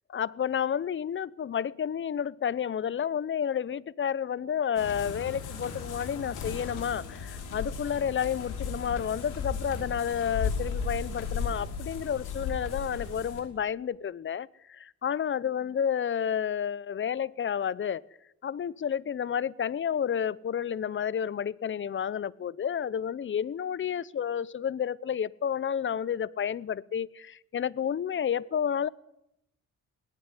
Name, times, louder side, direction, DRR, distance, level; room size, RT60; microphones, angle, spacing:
voice 1, 0.1-18.1 18.4-28.9, left 8 dB, 40° left, 0.7 m, -30 dB
sound 1, 4.8-13.4, left 5 dB, 85° left, 5.5 m, -35 dB
19.0 x 17.5 x 9.7 m
cardioid pair, 90°, 30 cm